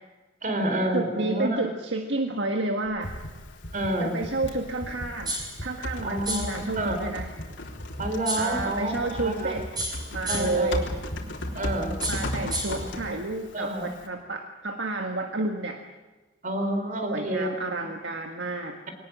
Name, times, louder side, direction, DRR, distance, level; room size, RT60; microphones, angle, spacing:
voice 1, 0.4-1.6 3.7-4.2 6.0-7.0 8.0-9.6 10.3-10.7 11.5-12.0 12.7-12.9 13.5-13.9 16.4-17.9, right 1 dB, 45° right, 6 dB, 4.3 m, -29 dB
voice 2, 0.9-3.1 4.0-7.3 8.4-10.9 12.1-15.8 17.0-18.9, right 2 dB, 65° right, 4 dB, 1.7 m, -30 dB
sound 1, 2.9-9.9 10.3-11.2, equal, 45° left, 2.4 m, -40 dB
Typing, 3.0-14.1, left 1 dB, 70° left, 3.6 m, -37 dB
sound 2, 5.3-5.6 6.3-6.6 8.3-8.6 9.8-10.7 12.0-12.9, right 1 dB, 20° right, 4.9 m, -32 dB
23.0 x 19.0 x 7.8 m, 1.2 s
head